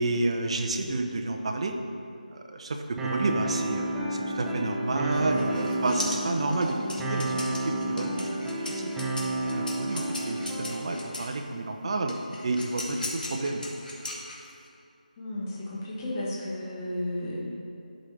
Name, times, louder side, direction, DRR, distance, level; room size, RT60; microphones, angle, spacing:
voice 1, 0.0-1.8 2.3-8.9 9.5-12.1 12.4-13.6, right 2 dB, 40° right, 4 dB, 0.7 m, -30 dB
sound 1, 3.0-11.0, right 1 dB, 5° right, 0.4 m, -31 dB
sound 2, 5.1-11.3 12.1-14.7, left 2 dB, 70° left, 1.7 m, -38 dB
voice 2, 15.2-17.4, left 1 dB, 20° left, -7 dB, 1.0 m, -33 dB
11.5 x 5.1 x 3.3 m, 2.6 s
figure-of-eight pair, 165°, 5 cm